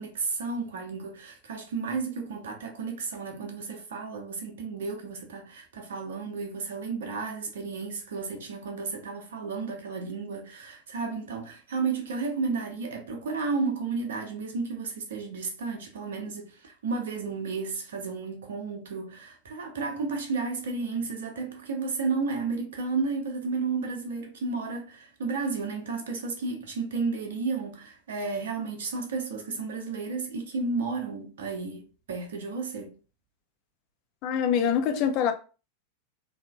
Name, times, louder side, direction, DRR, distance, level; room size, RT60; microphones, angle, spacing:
voice 1, 0.0-33.0, right 4 dB, 60° right, 0.6 m, -32 dB
voice 2, 34.2-35.3, left 8 dB, 40° left, 0.4 m, -24 dB
3.1 x 2.0 x 2.3 m
figure-of-eight pair, 90°, 0 cm